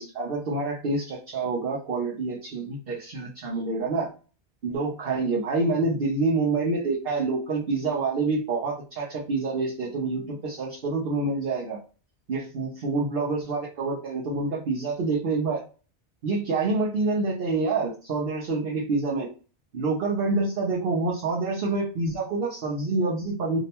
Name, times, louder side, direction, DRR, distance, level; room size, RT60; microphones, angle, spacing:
voice 1, 0.0-4.1 4.6-11.8 12.3-15.6 16.2-19.3 19.7-23.6, right 3 dB, 60° right, -3 dB, 0.9 m, -27 dB
2.7 x 2.1 x 2.8 m, 0.36 s
omnidirectional pair, 1.1 m